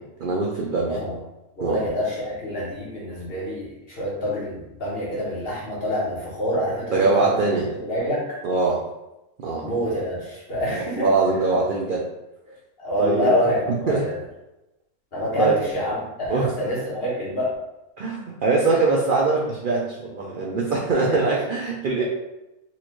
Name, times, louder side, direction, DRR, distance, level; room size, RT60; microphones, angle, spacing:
voice 1, 0.2-1.0 1.6-1.8 6.9-7.7 8.4-8.9 9.4-9.7 10.7-12.1 13.0-13.3 13.7-14.1 15.4-15.6 16.3-16.5 18.0-22.0, right 3 dB, 75° right, -3 dB, 0.4 m, -22 dB
voice 2, 0.9-1.2 1.6-7.3 7.8-8.4 9.6-11.1 12.8-14.1 15.1-17.5 21.1-21.3 22.0-22.1, equal, 45° left, -5 dB, 1.2 m, -26 dB
4.1 x 2.5 x 3.0 m, 0.94 s
omnidirectional pair, 1.5 m